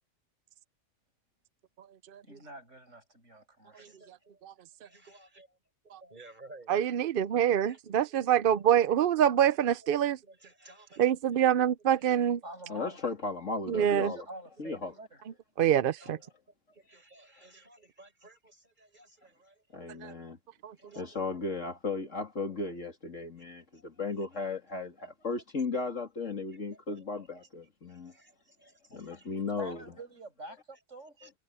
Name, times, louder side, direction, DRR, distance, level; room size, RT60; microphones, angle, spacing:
voice 1, 2.2-4.1 12.4-13.1 13.9-15.2 29.6-31.2, right 2 dB, 75° right, 7.5 m, -47 dB
voice 2, 3.7-4.4 4.8-5.5 6.0-6.7 7.7-8.6 9.8-9.9 10.2-11.1 11.9-12.3 14.6-14.7 15.6-16.2 16.7-20.2 20.8-21.2 23.7-23.8 25.0-25.1 26.5-26.6 27.0-27.3 27.9-29.4 31.2-31.3, right 2 dB, 40° right, 5.1 m, -56 dB
voice 3, 6.7-10.2 11.0-12.4 13.7-14.1 15.6-16.2 20.0-20.1 20.6-20.7, right 10 dB, 60° right, 0.7 m, -25 dB
voice 4, 12.7-14.3 14.6-14.9 16.1-16.2 19.7-20.4 21.0-28.1 28.9-29.8, left 3 dB, 85° left, 3.4 m, -36 dB
omnidirectional pair, 1.3 m